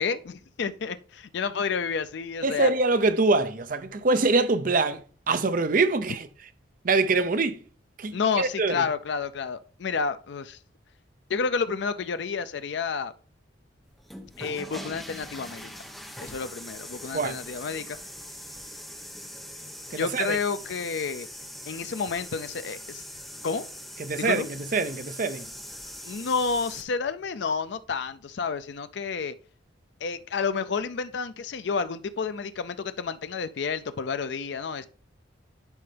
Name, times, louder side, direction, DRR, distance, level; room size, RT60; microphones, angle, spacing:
voice 1, 0.0-2.7 8.1-10.6 11.3-13.1 14.4-15.7 16.2-18.0 19.9-21.3 21.7-23.0 23.4-23.7 24.2-24.5 26.0-29.4 30.0-34.9, left 5 dB, 60° left, 0.4 m, -30 dB
voice 2, 2.4-5.0 5.3-6.3 6.8-7.6 8.0-8.8 17.1-17.4 19.9-20.4 24.0-25.5, right 3 dB, 45° right, 0.6 m, -24 dB
sound 1, 13.9-26.8, equal, ahead, 0.9 m, -42 dB
10.5 x 4.3 x 3.4 m
head